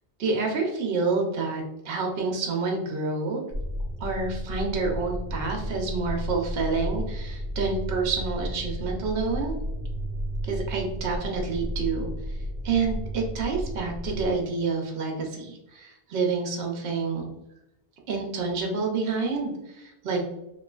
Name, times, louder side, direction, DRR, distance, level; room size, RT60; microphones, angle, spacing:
voice 1, 0.2-3.4 4.0-9.6 10.4-12.4 12.6-17.3 18.1-20.3, right 4 dB, 70° right, 1 dB, 0.8 m, -28 dB
sound 1, 3.5-14.3, equal, 75° left, 1.0 m, -33 dB
3.0 x 2.4 x 2.3 m, 0.92 s
omnidirectional pair, 1.1 m